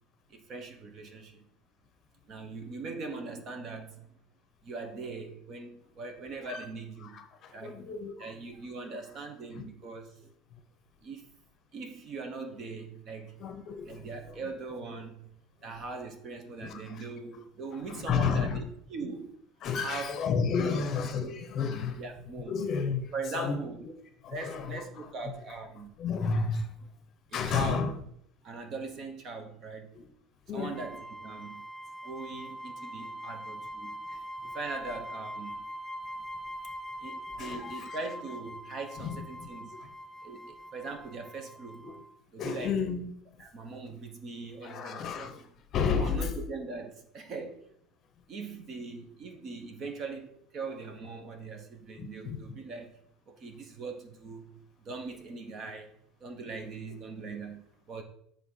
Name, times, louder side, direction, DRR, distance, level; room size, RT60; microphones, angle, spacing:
voice 1, 0.3-1.4 2.3-4.1 4.6-7.2 7.5-7.8 8.2-10.2 11.0-11.3 11.7-13.4 13.8-15.3 15.6-19.4 19.8-20.8 21.2-21.5 22.0-22.6 23.1-23.9 24.3-25.9 27.3-27.9 28.4-29.9 30.5-31.6 32.0-34.0 34.4-35.7 37.0-39.7 40.2-41.9 42.3-42.8 43.4-45.3 46.0-47.7 48.3-52.9 53.3-55.9 56.2-58.0, right 3 dB, 35° right, 1.0 m, -41 dB
voice 2, 7.0-8.3 9.5-9.7 10.5-10.6 13.4-14.4 16.6-17.0 17.8-18.6 19.6-22.0 22.5-23.6 24.2-25.3 26.0-26.7 27.3-28.0 29.9-30.1 30.5-30.8 34.1-34.2 37.4-37.9 39.0-39.5 39.8-39.9 41.8-42.0 42.4-43.1 44.6-46.3 52.0-52.4, left 5 dB, 35° left, 0.8 m, -32 dB
sound 1, 30.7-42.2, equal, ahead, 0.6 m, -42 dB
7.3 x 3.4 x 5.6 m
cardioid pair, 165°, 0 cm